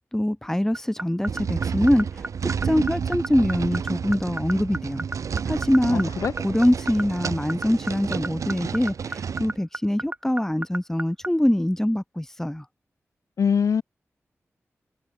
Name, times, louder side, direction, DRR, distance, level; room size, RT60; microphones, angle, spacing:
voice 1, 0.1-5.1 5.5-6.1 6.4-12.6, left 1 dB, 10° left, 0.7 m, -24 dB
sound 1, 0.7-11.3, right 2 dB, 30° right, 1.4 m, -30 dB
sound 2, 1.3-9.6, right 6 dB, 90° right, 1.8 m, -30 dB
voice 2, 5.9-6.3 13.4-13.8, left 6 dB, 85° left, 1.2 m, -23 dB
cardioid pair, 45°, 5 cm